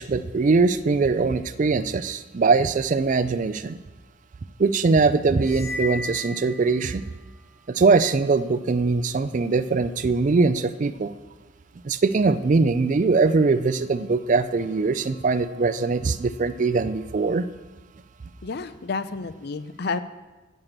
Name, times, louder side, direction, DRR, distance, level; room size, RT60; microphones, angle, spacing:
voice 1, 0.0-3.8 4.6-7.0 7.7-11.1 11.8-17.4, right 4 dB, 40° right, 13 dB, 0.4 m, -21 dB
sound 1, 5.4-7.2, left 3 dB, 90° left, 2.4 m, -35 dB
voice 2, 18.4-20.0, left 4 dB, 55° left, 13 dB, 0.5 m, -30 dB
7.3 x 6.8 x 7.9 m, 1.2 s
head